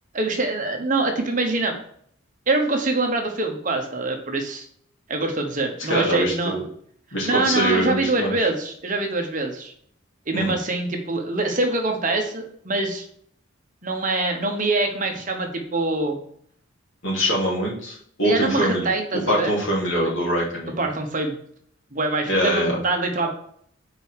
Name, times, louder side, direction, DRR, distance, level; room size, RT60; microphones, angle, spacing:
voice 1, 0.1-1.7 2.5-4.6 5.1-6.6 7.2-9.7 10.3-13.0 13.8-16.2 18.2-20.1 20.8-21.3 21.9-23.3, right 2 dB, 40° right, 4 dB, 1.1 m, -24 dB
voice 2, 5.8-6.6 7.1-8.3 10.3-10.5 17.0-18.9 19.3-20.8 22.3-22.8, equal, 75° left, -4 dB, 2.9 m, -23 dB
5.2 x 4.8 x 6.3 m, 0.63 s
head